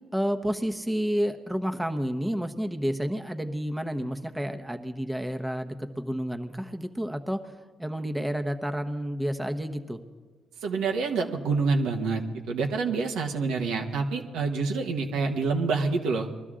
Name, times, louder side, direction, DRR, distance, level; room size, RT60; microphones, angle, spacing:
voice 1, 0.1-7.4 7.8-10.0, equal, 5° right, 6 dB, 1.0 m, -30 dB
voice 2, 10.6-16.3, right 4 dB, 90° right, 2 dB, 1.5 m, -27 dB
21.5 x 12.5 x 3.8 m, 1.4 s
cardioid pair, 90°, 0 cm